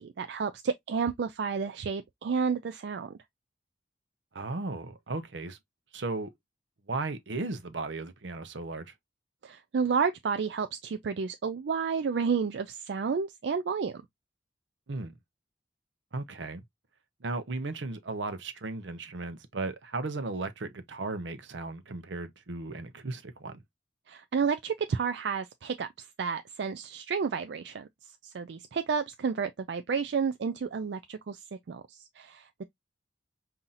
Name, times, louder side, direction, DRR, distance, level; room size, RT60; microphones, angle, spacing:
voice 1, 0.0-3.2 9.4-14.0 24.1-27.9 28.2-32.6, right 5 dB, 70° right, 0.4 m, -31 dB
voice 2, 4.3-5.6 5.9-6.3 6.9-8.9 14.9-15.1 16.1-16.6 17.2-23.6, right 3 dB, 85° right, 0.8 m, -36 dB
5.5 x 2.8 x 2.4 m
head